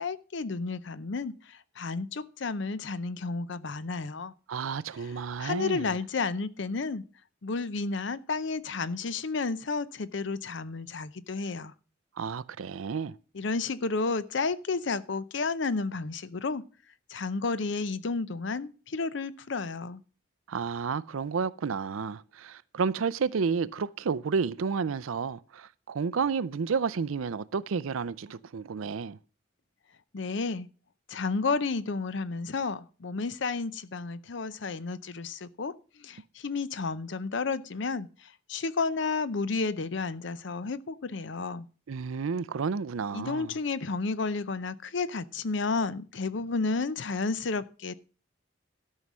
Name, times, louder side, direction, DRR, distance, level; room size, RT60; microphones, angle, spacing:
voice 1, 0.0-4.3 5.4-7.0 7.4-11.7 13.3-16.6 17.1-20.0 30.1-30.7 31.1-41.7 43.1-47.9, left 4 dB, 60° left, 0.6 m, -32 dB
voice 2, 4.5-5.9 12.2-13.2 20.5-29.2 41.9-43.6, right 5 dB, 85° right, 0.5 m, -31 dB
13.0 x 5.6 x 6.1 m
head